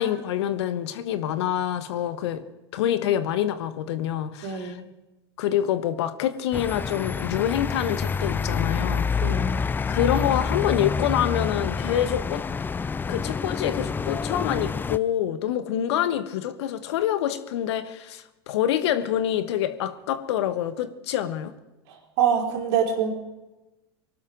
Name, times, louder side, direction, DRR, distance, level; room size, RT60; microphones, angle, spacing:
voice 1, 0.0-2.4 2.7-4.8 5.4-9.2 9.9-12.4 13.1-21.5, left 11 dB, 65° left, 12 dB, 1.2 m, -26 dB
voice 2, 4.4-4.8 9.2-9.6 21.9-23.1, right 7 dB, 60° right, 2 dB, 4.0 m, -25 dB
sound 1, 6.5-15.0, left 5 dB, 15° left, 0.4 m, -27 dB
23.5 x 12.5 x 3.8 m, 1.0 s
hypercardioid pair, 95°, 15 cm